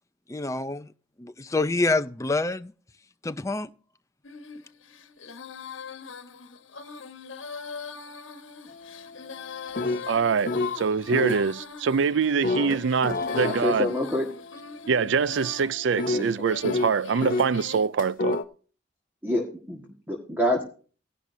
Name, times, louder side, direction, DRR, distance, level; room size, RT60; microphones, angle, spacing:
voice 1, 0.3-0.9 1.2-2.7 3.2-3.7, left 2 dB, 15° left, 0.5 m, -27 dB
Female singing, 4.2-17.9, left 6 dB, 80° left, 1.2 m, -41 dB
sound 1, 8.7-10.8 11.1-11.4 12.4-17.5 18.0-18.4, left 2 dB, 45° left, 0.9 m, -31 dB
voice 2, 10.1-13.9 14.9-18.4, right 5 dB, 65° right, 0.4 m, -24 dB
voice 3, 13.4-14.2 16.1-16.3 19.2-20.6, left 1 dB, 10° right, 1.7 m, -27 dB
16.5 x 11.0 x 2.7 m
head